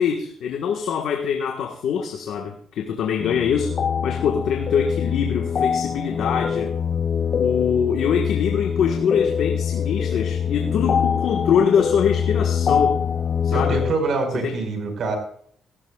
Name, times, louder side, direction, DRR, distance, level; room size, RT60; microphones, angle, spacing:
voice 1, 0.0-3.7 4.0-6.7 7.4-13.0 13.4-13.8 14.4-14.6, left 7 dB, 75° left, 3 dB, 1.4 m, -23 dB
sound 1, 3.2-13.9, left 7 dB, 50° left, 0.5 m, -24 dB
voice 2, 13.5-15.2, right 3 dB, 65° right, 5 dB, 4.9 m, -25 dB
16.5 x 16.5 x 2.4 m, 0.62 s
cardioid pair, 90°, 0 cm